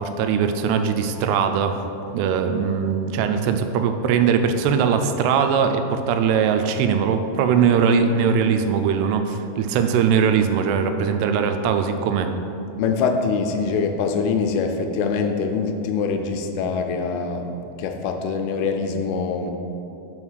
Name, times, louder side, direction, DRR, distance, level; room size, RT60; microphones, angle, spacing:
voice 1, 0.0-1.8 2.1-12.3, right 6 dB, 90° right, 7 dB, 2.6 m, -20 dB
voice 2, 12.8-17.5 17.8-19.5, left 5 dB, 85° left, 5 dB, 2.5 m, -24 dB
5.6 x 4.9 x 6.2 m, 2.9 s
omnidirectional pair, 4.7 m